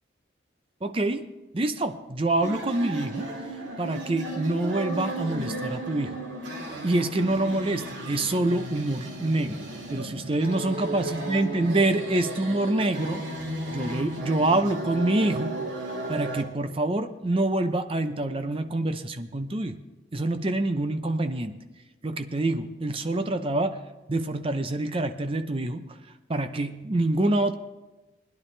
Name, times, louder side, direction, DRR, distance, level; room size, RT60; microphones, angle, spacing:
voice 1, 0.8-3.3 3.8-6.2 6.8-13.3 13.7-15.6 16.1-19.8 20.1-21.6 22.0-23.8 24.1-25.8 26.3-27.5, right 2 dB, 30° right, 8 dB, 0.6 m, -26 dB
sound 1, 2.4-16.4, right 1 dB, 80° right, 2.5 m, -34 dB
20.0 x 10.5 x 3.3 m, 1.1 s
head